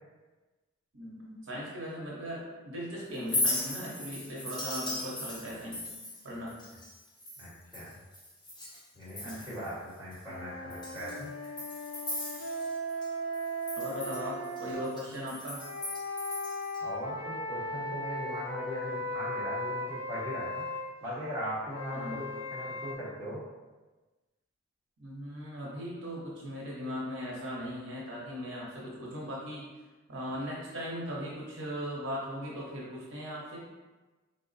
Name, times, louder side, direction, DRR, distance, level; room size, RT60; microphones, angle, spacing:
voice 1, 0.9-5.8 6.2-6.6 9.2-9.5 13.8-15.6 21.9-22.2 25.0-29.6 30.1-33.6, equal, 55° right, -5 dB, 0.8 m, -38 dB
Chink clink, 3.1-8.8 9.1-9.7 10.1-10.2 10.7-13.1 13.3-16.8, left 2 dB, 20° left, 0.6 m, -37 dB
voice 2, 7.4-7.9 8.9-11.5 16.8-20.6 21.0-23.4, equal, 10° right, -9 dB, 1.0 m, -39 dB
sound 1, 10.3-14.8 15.5-20.9 21.7-22.9, equal, 65° left, 0.6 m, -37 dB
3.8 x 2.0 x 3.9 m, 1.2 s
head